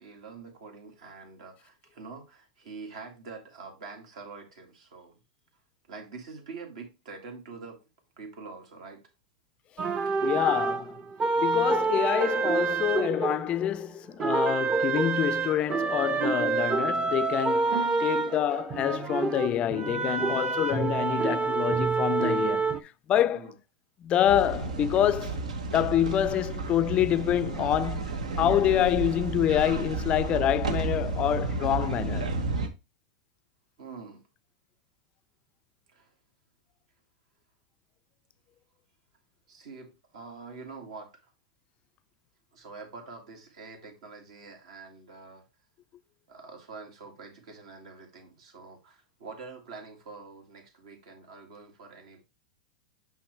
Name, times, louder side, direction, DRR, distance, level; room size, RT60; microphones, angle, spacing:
voice 1, 0.0-5.2 5.9-7.8 8.2-9.0 23.2-23.5 33.8-34.2 35.9-36.1 39.5-41.3 42.5-45.4 46.3-52.2, right 4 dB, 70° right, 2.2 m, -45 dB
sound 1, 9.8-13.9 14.2-22.8, right 4 dB, 25° right, 0.6 m, -27 dB
voice 2, 10.2-11.0 11.4-23.5 24.0-25.4 25.7-32.4, left 11 dB, 30° left, 0.3 m, -27 dB
sound 2, 24.2-32.7, right 3 dB, 85° right, 1.0 m, -32 dB
5.8 x 5.7 x 3.1 m
hypercardioid pair, 115°, 4 cm